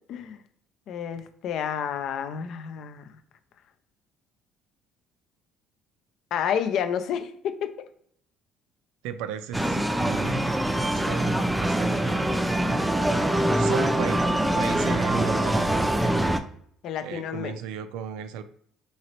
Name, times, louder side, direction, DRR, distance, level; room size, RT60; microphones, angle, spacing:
voice 1, 0.1-0.4 0.9-3.0 6.3-7.7 16.8-17.5, left 8 dB, 65° left, 8 dB, 0.4 m, -30 dB
voice 2, 9.0-10.5 10.8-12.4 13.5-16.5 17.0-18.4, right 8 dB, 85° right, 12 dB, 0.3 m, -36 dB
sound 1, 9.5-16.4, right 1 dB, 5° right, 0.3 m, -24 dB
3.0 x 2.8 x 2.9 m, 0.65 s
supercardioid pair, 95°, 0 cm